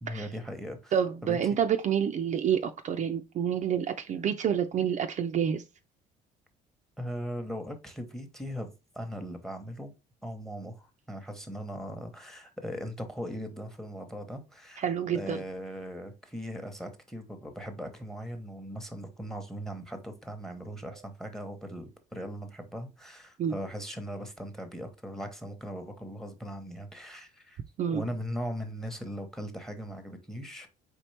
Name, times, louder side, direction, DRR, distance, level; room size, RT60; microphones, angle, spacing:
voice 1, 0.0-0.9 1.2-1.6 7.0-9.9 10.2-14.8 15.1-27.6 27.9-30.7, equal, ahead, 0.9 m, -39 dB
voice 2, 0.9-5.6 14.8-15.4 23.4-23.5 27.8-28.0, right 8 dB, 45° right, 0.5 m, -28 dB
4.4 x 3.5 x 3.3 m
cardioid pair, 110°, 17 cm